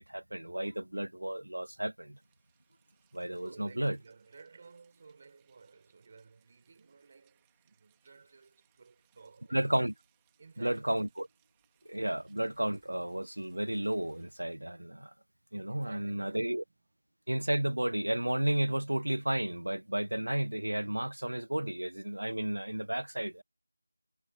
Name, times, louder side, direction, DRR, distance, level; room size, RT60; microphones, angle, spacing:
voice 1, 0.1-2.2 3.1-4.0 9.5-9.9 10.6-11.3 11.9-15.1 15.5-16.6 17.3-23.4, right 1 dB, 90° right, 0.6 m, -32 dB
Rain, 2.0-14.6, right 23 dB, 5° right, 1.8 m, -75 dB
voice 2, 3.4-9.8 10.4-11.1 15.7-16.7, right 4 dB, 25° right, 4.2 m, -56 dB
figure-of-eight pair, 175°, 0 cm